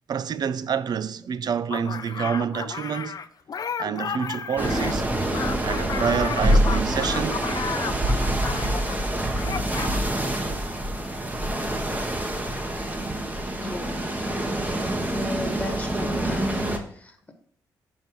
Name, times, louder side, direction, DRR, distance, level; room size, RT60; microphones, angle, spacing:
voice 1, 0.1-3.2 3.8-5.1 5.6-7.5, right 7 dB, 55° right, 0.4 m, -28 dB
sound 1, 1.7-9.0 9.3-10.0, left 6 dB, 50° left, 0.5 m, -33 dB
sound 2, 4.6-16.8, right 1 dB, 20° right, 1.1 m, -26 dB
voice 2, 13.6-14.1 15.1-17.3, left 1 dB, 15° left, 1.4 m, -34 dB
5.4 x 5.2 x 4.5 m
supercardioid pair, 55°, 8 cm